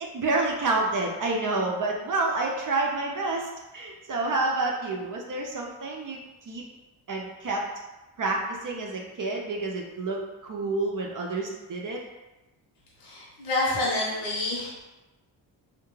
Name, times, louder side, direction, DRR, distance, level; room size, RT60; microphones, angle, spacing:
voice 1, 0.0-6.2 6.5-6.6 7.1-7.6 8.2-12.0, right 2 dB, 45° right, 0 dB, 0.5 m, -29 dB
voice 2, 13.0-14.8, left 2 dB, 65° left, -6 dB, 0.8 m, -28 dB
2.3 x 2.1 x 3.0 m, 1.0 s
cardioid pair, 75°, 45 cm